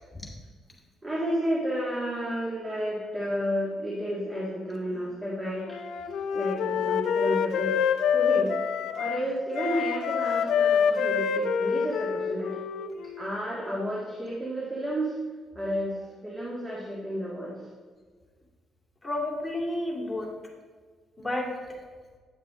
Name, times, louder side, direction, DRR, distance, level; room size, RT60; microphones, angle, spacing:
voice 1, 1.0-7.8 8.1-8.5 9.0-12.5 13.2-15.2 15.5-17.7, equal, 20° right, -5 dB, 1.9 m, -31 dB
Wind instrument woodwind instrument, 5.7-9.2 9.5-13.3, left 7 dB, 75° left, 0.5 m, -26 dB
voice 2, 19.0-20.3 21.2-21.7, left 1 dB, 10° left, -3 dB, 2.4 m, -31 dB
9.6 x 7.3 x 3.8 m, 1.5 s
cardioid pair, 90°, 0 cm